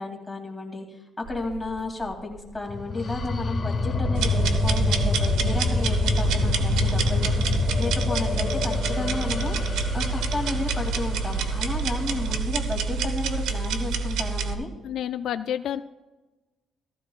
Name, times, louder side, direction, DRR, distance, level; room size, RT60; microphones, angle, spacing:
voice 1, 0.0-14.7, left 2 dB, 15° left, 0 dB, 2.7 m, -33 dB
sound 1, 1.2-13.0, right 4 dB, 35° right, 2.5 m, -42 dB
sound 2, 2.7-12.4, left 4 dB, 45° left, 0.9 m, -27 dB
sound 3, 4.1-14.5, right 4 dB, 90° right, 0.9 m, -27 dB
voice 2, 14.8-15.8, left 10 dB, 75° left, 11 dB, 0.3 m, -29 dB
14.5 x 14.5 x 2.4 m, 1.1 s
cardioid pair, 90°, 0 cm